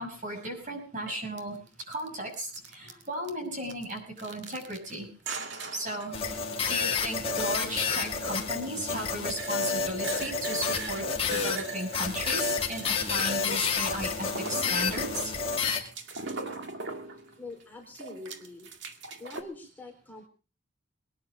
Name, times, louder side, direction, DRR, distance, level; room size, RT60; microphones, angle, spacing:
voice 1, 0.0-1.6 1.9-5.1 5.7-15.3 15.7-15.8, right 1 dB, 35° right, 3 dB, 6.3 m, -36 dB
sound 1, 0.6-0.7 1.1-1.4 1.7-2.1 2.3-3.3 3.6-5.0 5.3-17.6 17.9-19.4, right 4 dB, 55° right, 2.1 m, -42 dB
sound 2, 6.1-15.8, left 5 dB, 25° left, 2.9 m, -30 dB
voice 2, 17.4-18.7 19.2-20.3, left 2 dB, 10° left, -1 dB, 4.0 m, -44 dB
23.0 x 10.5 x 5.0 m, 0.36 s
head